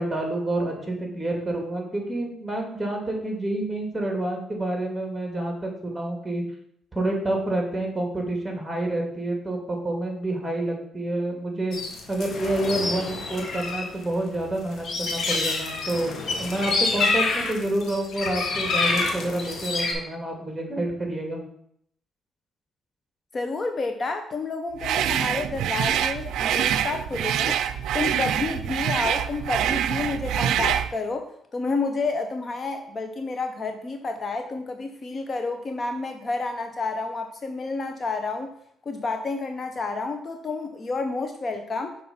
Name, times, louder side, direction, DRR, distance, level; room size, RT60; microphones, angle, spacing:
voice 1, 0.0-6.4 6.9-11.8 12.1-21.4, right 1 dB, 10° right, 1 dB, 1.9 m, -28 dB
sound 1, 11.7-13.8 14.1-19.9, left 3 dB, 60° left, 1.3 m, -27 dB
voice 2, 23.3-27.6 27.9-38.5 38.9-42.0, left 3 dB, 40° left, 6 dB, 0.6 m, -30 dB
sound 2, 24.8-30.9, right 10 dB, 85° right, 0.4 m, -25 dB
5.8 x 3.8 x 5.5 m, 0.70 s
cardioid pair, 90°, 0 cm